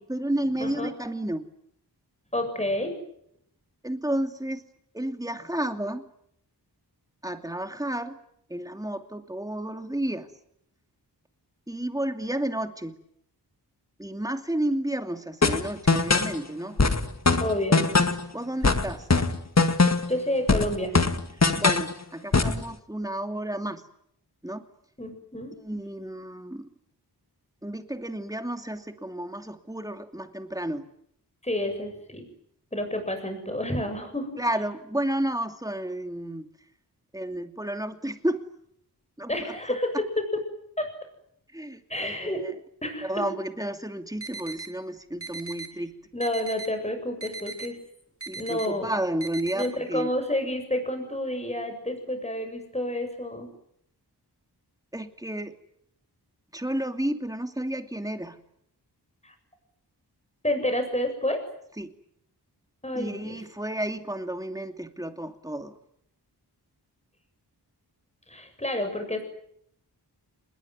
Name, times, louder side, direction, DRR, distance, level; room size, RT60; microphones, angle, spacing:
voice 1, 0.1-1.5 3.8-4.6 4.9-6.1 7.2-8.2 8.5-10.3 11.7-13.0 14.0-16.8 18.3-19.1 21.5-23.8 24.4-24.7 25.6-26.7 27.6-30.9 34.4-36.5 37.1-38.4 39.2-40.0 41.5-42.5 43.0-45.9 48.3-50.1 54.9-55.6 56.5-58.4 61.8-61.9 62.9-65.8, right 1 dB, 10° right, 7 dB, 2.6 m, -31 dB
voice 2, 2.3-3.0 17.4-17.9 20.1-20.9 25.0-25.5 31.4-32.3 32.7-34.4 39.3-40.2 40.8-40.9 41.9-42.4 42.8-43.2 46.1-47.8 48.3-48.9 49.5-53.5 59.2-59.3 60.4-61.4 62.8-63.4 68.3-69.2, left 1 dB, 15° left, 6 dB, 7.6 m, -29 dB
sound 1, 15.4-16.4 16.8-18.3 18.6-20.2 20.5-21.9 22.3-22.6, left 3 dB, 40° left, 1.9 m, -21 dB
sound 2, 44.2-44.7 45.2-45.7 46.2-46.7 47.2-47.7 48.2-48.7 49.2-49.7, right 4 dB, 35° right, 3.3 m, -38 dB
26.5 x 21.0 x 9.6 m, 0.71 s
wide cardioid pair, 75°, 40 cm